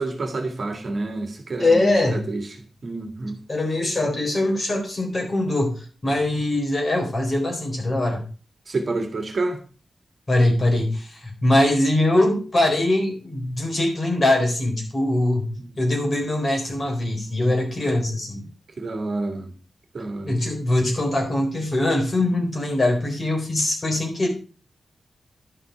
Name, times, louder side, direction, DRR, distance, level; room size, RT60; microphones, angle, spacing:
voice 1, 0.0-2.4 2.8-3.4 8.7-9.6 15.6-15.7 18.8-19.5 19.9-20.4 22.2-22.3, right 3 dB, 50° right, 1.9 m, -28 dB
voice 2, 1.6-2.2 3.5-8.2 10.3-15.5 15.8-18.5 20.2-24.3, left 1 dB, 35° left, 3.9 m, -22 dB
11.5 x 5.8 x 5.7 m
wide cardioid pair, 125°, 0 cm